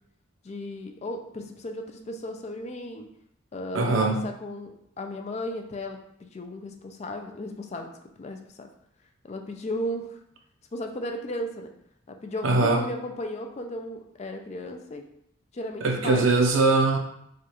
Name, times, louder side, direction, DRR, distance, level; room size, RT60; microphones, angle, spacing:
voice 1, 0.4-3.1 3.5-7.9 8.2-8.7 9.2-10.2 10.7-11.7 12.1-15.0 15.5-16.3, left 1 dB, 30° left, 4 dB, 0.3 m, -35 dB
voice 2, 3.7-4.3 12.4-12.8 15.8-17.0, right 3 dB, 75° right, 3 dB, 0.6 m, -21 dB
4.8 x 2.3 x 2.9 m, 0.73 s
head